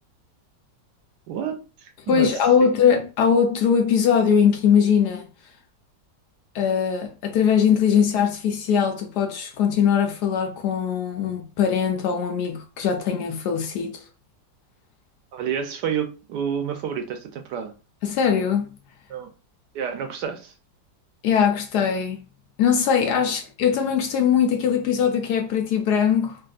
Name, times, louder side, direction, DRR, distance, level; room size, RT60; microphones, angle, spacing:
voice 1, 1.3-2.3 2.6-2.8 15.3-17.7 19.1-19.3 19.7-20.5, right 8 dB, 75° right, 1.1 m, -29 dB
voice 2, 2.1-5.3 6.5-14.0 18.0-18.7 21.2-22.2 22.6-26.4, left 7 dB, 70° left, 1.1 m, -21 dB
3.4 x 2.7 x 2.3 m
omnidirectional pair, 2.0 m